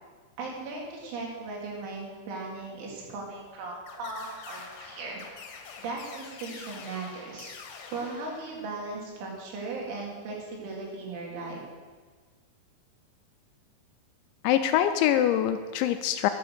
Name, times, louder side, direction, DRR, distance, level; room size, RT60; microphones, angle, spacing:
voice 1, 0.4-5.2 5.8-7.5 7.9-11.6, right 3 dB, 75° right, -2 dB, 4.7 m, -37 dB
sound 1, 3.9-9.0, left 6 dB, 65° left, 3.0 m, -46 dB
voice 2, 14.4-16.3, left 11 dB, 85° left, 8 dB, 2.8 m, -24 dB
12.0 x 8.4 x 6.7 m, 1.5 s
omnidirectional pair, 5.5 m